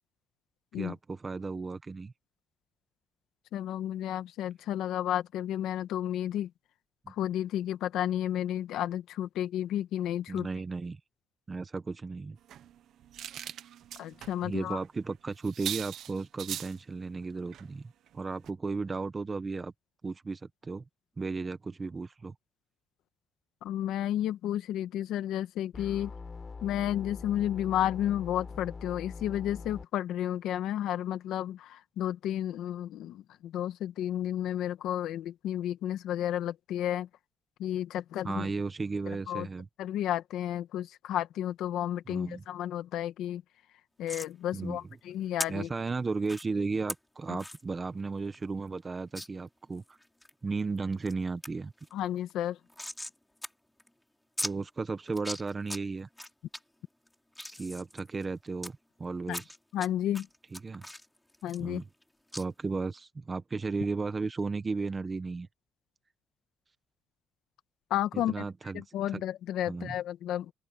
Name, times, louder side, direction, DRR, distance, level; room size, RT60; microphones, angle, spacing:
voice 1, 0.7-2.1 7.1-7.2 10.3-11.0 11.5-12.4 14.4-19.7 20.0-20.8 21.2-22.3 38.2-39.7 42.1-42.4 44.5-44.8 45.5-49.8 50.4-51.7 54.4-56.1 57.5-59.4 60.5-60.8 61.6-61.9 62.3-65.5 68.3-68.8 69.1-69.2 69.7-69.9, right 4 dB, 20° right, 1.2 m, -35 dB
voice 2, 3.5-6.5 7.1-10.5 14.0-14.8 23.6-26.1 26.6-37.1 37.6-38.5 39.3-39.5 39.8-43.4 44.0-45.7 47.3-47.4 51.9-52.6 59.3-59.4 59.7-60.3 61.4-61.8 67.9-68.4 68.7-70.5, left 11 dB, 75° left, 1.8 m, -32 dB
sound 1, 12.4-14.4 14.7-14.9 15.1-15.2 15.4-16.8 17.5-17.7 18.1-18.2 18.4-18.5, right 10 dB, 55° right, 0.9 m, -40 dB
sound 2, 25.7-29.8, left 4 dB, 20° left, 4.6 m, -43 dB
sound 3, 44.1-44.3 45.4-45.5 46.3-46.4 46.9-47.0 47.4-47.6 48.0-48.1 48.3-48.4 49.2-49.3 49.8-50.3 50.8-51.1 51.4-51.5 51.8-53.2 53.4-53.5 53.8-53.9 54.4-54.5 55.1-55.8 56.2-56.6 57.1-58.7 59.3-59.9 60.1-62.0 62.3-62.4, left 1 dB, 5° left, 4.6 m, -39 dB
open air
cardioid pair, 170°, 0 cm